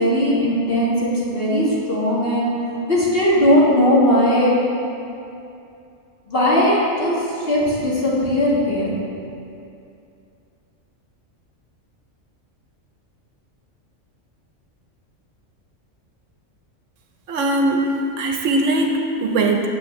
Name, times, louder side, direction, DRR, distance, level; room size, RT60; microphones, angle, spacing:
voice 1, 0.0-2.5 2.9-4.5 6.3-7.2 7.5-9.0, equal, 45° left, -7 dB, 1.8 m, -18 dB
voice 2, 17.3-19.7, right 2 dB, 75° right, 3 dB, 1.1 m, -20 dB
7.5 x 7.5 x 3.2 m, 2.6 s
omnidirectional pair, 1.3 m